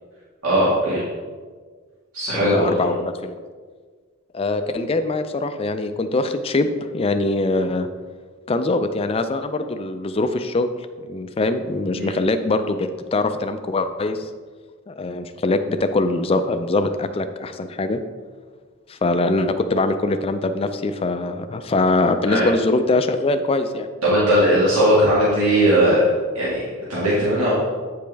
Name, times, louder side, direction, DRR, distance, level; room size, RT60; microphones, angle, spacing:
voice 1, 0.4-1.0 2.1-2.9 11.9-12.1 22.3-22.5 24.0-26.1 26.3-27.5, equal, 75° right, -9 dB, 1.9 m, -18 dB
voice 2, 2.4-3.4 4.3-7.9 8.5-10.7 11.0-14.3 14.9-18.0 18.9-23.9, left 2 dB, 25° left, 8 dB, 0.3 m, -22 dB
8.6 x 5.1 x 3.4 m, 1.5 s
head